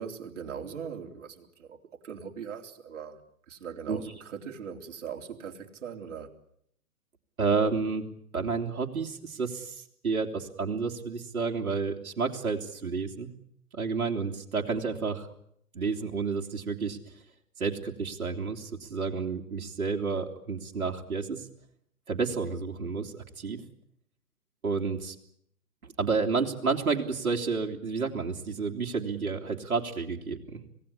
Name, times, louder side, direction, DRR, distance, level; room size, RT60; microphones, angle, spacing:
voice 1, 0.0-1.8 2.0-3.2 3.5-6.3, right 7 dB, 55° right, 3 dB, 3.6 m, -40 dB
voice 2, 7.4-8.1 8.3-13.3 13.7-15.3 15.7-17.1 17.6-21.5 22.1-23.6 24.6-25.1 26.0-30.6, right 4 dB, 70° right, 2 dB, 3.1 m, -30 dB
26.5 x 18.0 x 9.9 m, 0.71 s
figure-of-eight pair, 130°, 44 cm